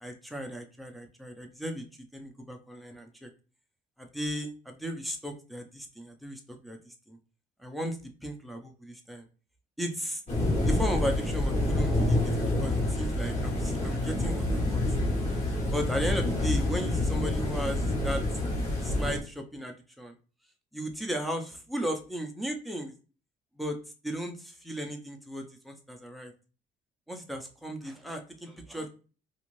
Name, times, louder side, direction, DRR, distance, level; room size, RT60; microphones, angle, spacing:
voice 1, 0.0-1.8 2.1-3.3 4.0-7.2 7.6-9.3 9.8-10.2 10.7-12.3 12.6-14.8 15.7-18.2 18.8-20.2 20.7-22.9 23.6-23.8 24.0-26.3 27.1-28.9, equal, ahead, 3 dB, 0.6 m, -36 dB
sound 1, 10.3-19.2, left 1 dB, 40° left, 1.2 m, -27 dB
2.6 x 2.5 x 3.1 m, 0.35 s
cardioid pair, 110°, 17 cm